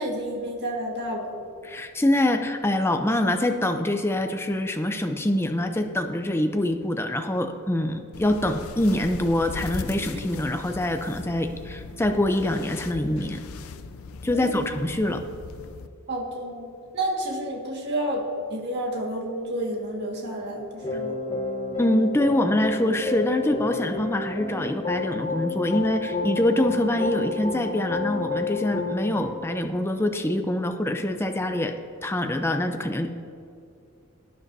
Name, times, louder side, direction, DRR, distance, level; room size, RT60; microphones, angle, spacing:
voice 1, 0.0-1.3 14.3-14.4 16.1-16.7 16.9-18.2 18.5-21.2, right 1 dB, 50° right, -1 dB, 1.8 m, -30 dB
voice 2, 1.6-13.4 14.2-15.2 21.8-31.7 32.0-33.1, left 1 dB, 10° left, 6 dB, 0.5 m, -25 dB
sound 1, 8.1-15.9, left 4 dB, 70° left, 0.5 m, -39 dB
sound 2, 20.8-29.3, left 3 dB, 25° left, 1.1 m, -30 dB
18.0 x 9.8 x 2.7 m, 2.5 s
head